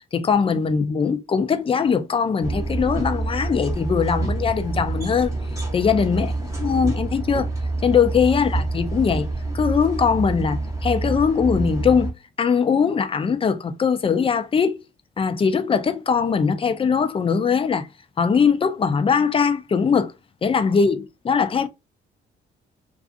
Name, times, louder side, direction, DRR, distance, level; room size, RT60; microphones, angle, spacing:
voice 1, 0.1-5.4 5.7-7.5 7.8-12.1 12.4-14.8 15.2-17.9 18.2-20.1 20.4-21.7, left 6 dB, 25° left, 0.4 m, -21 dB
sound 1, 2.4-12.1, right 2 dB, 15° right, 1.0 m, -27 dB
2.4 x 2.4 x 2.5 m
cardioid pair, 90°, 20 cm